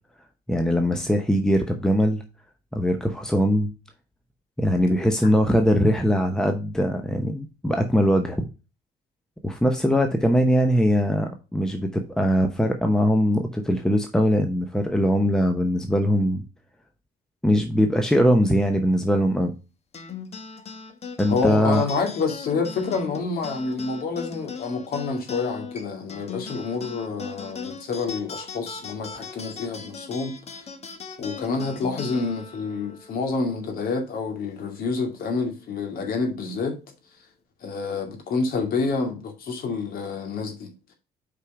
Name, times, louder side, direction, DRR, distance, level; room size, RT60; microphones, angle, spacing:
voice 1, 0.5-2.2 2.7-3.7 4.6-8.4 9.4-16.4 17.4-19.5 21.2-21.8, equal, 5° left, 0.8 m, -21 dB
sound 1, 19.9-34.7, left 5 dB, 40° left, 1.1 m, -39 dB
voice 2, 21.3-30.7 31.2-36.8 37.6-40.7, left 4 dB, 60° left, 2.2 m, -28 dB
5.5 x 5.0 x 4.8 m
cardioid pair, 110°, 17 cm